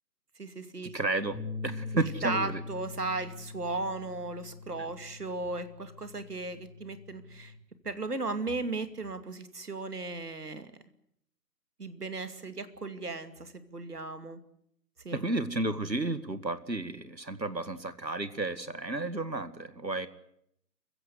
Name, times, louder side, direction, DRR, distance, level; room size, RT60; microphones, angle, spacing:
voice 1, 0.4-0.9 1.9-7.5 7.8-10.7 11.8-14.4 15.0-15.2, right 3 dB, 65° right, 10 dB, 2.6 m, -36 dB
voice 2, 0.9-1.4 1.6-2.6 15.1-20.1, right 2 dB, 90° right, 13 dB, 2.1 m, -32 dB
Bass guitar, 1.3-7.6, left 4 dB, ahead, 1.4 m, -43 dB
28.0 x 16.0 x 9.6 m, 0.73 s
figure-of-eight pair, 150°, 49 cm